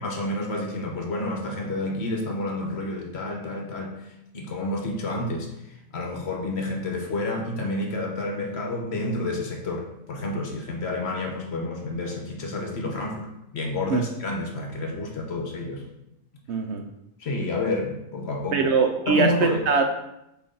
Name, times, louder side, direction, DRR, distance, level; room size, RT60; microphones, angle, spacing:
voice 1, 0.0-3.9 4.3-13.3 13.5-15.8 17.2-18.7 19.1-19.6, left 2 dB, 55° left, 1 dB, 1.1 m, -29 dB
voice 2, 16.5-16.9 18.5-19.8, right 5 dB, 65° right, 4 dB, 0.7 m, -22 dB
8.0 x 3.1 x 3.8 m, 0.85 s
omnidirectional pair, 1.4 m